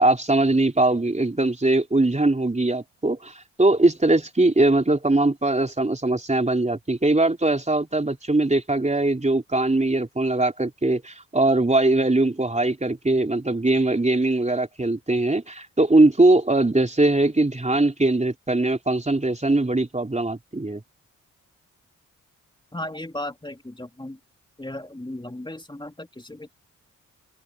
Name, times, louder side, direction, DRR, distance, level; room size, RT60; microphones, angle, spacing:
voice 1, 0.0-20.8, right 2 dB, 20° right, 3.8 m, -21 dB
voice 2, 22.7-24.2 24.6-26.5, left 1 dB, 15° left, 3.1 m, -35 dB
cardioid pair, 55°, 33 cm